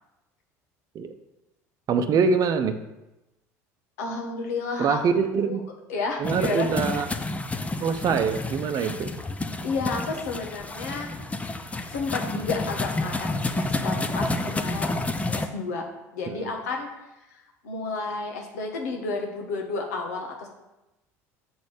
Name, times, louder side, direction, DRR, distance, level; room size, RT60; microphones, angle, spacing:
voice 1, 1.9-2.8 4.8-5.7 6.2-7.1 7.8-9.1 16.3-16.5, right 5 dB, 45° right, 7 dB, 0.7 m, -24 dB
voice 2, 4.0-5.0 5.4-5.6 5.9-6.7 9.6-11.1 11.9-15.0 15.3-15.8 16.1-16.9 17.3-20.5, left 4 dB, 75° left, 2 dB, 1.5 m, -31 dB
sound 1, 6.2-15.5, left 2 dB, 15° left, 0.7 m, -30 dB
6.9 x 4.2 x 6.7 m, 0.98 s
hypercardioid pair, 70°, 8 cm